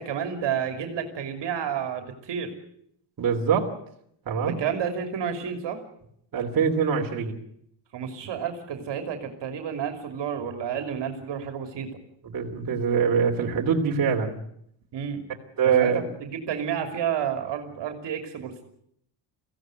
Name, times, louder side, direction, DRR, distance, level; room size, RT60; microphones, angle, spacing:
voice 1, 0.0-2.5 4.4-5.8 7.9-11.9 14.9-15.2 15.8-15.9 16.2-18.6, right 8 dB, 65° right, 6 dB, 3.1 m, -30 dB
voice 2, 3.2-3.7 4.3-4.5 6.3-7.4 12.3-14.4 15.6-16.1, right 6 dB, 45° right, 1 dB, 3.2 m, -23 dB
23.5 x 16.0 x 9.3 m, 0.72 s
cardioid pair, 155°, 46 cm